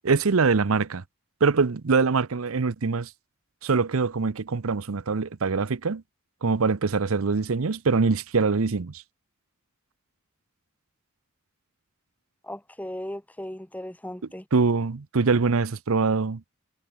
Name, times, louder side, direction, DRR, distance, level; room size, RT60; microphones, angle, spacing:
voice 1, 0.0-1.0 1.4-3.1 3.6-6.0 6.4-9.0 14.5-16.4, right 4 dB, 75° right, 0.7 m, -23 dB
voice 2, 12.4-14.4, left 1 dB, 5° left, 1.3 m, -37 dB
head